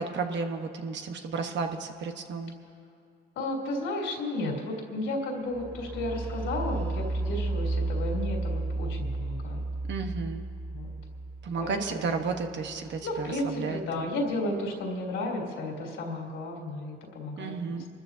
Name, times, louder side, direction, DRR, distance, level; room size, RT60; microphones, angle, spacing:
voice 1, 0.0-2.5 9.9-10.4 11.4-14.1 17.4-17.9, right 4 dB, 65° right, 5 dB, 1.2 m, -33 dB
voice 2, 3.3-9.7 10.7-10.9 11.6-11.8 12.1-12.2 13.0-17.5, left 1 dB, 85° left, -1 dB, 3.2 m, -33 dB
sound 1, 5.5-13.2, right 2 dB, 10° left, 1.9 m, -33 dB
29.5 x 13.5 x 2.8 m, 2.4 s
cardioid pair, 90°, 20 cm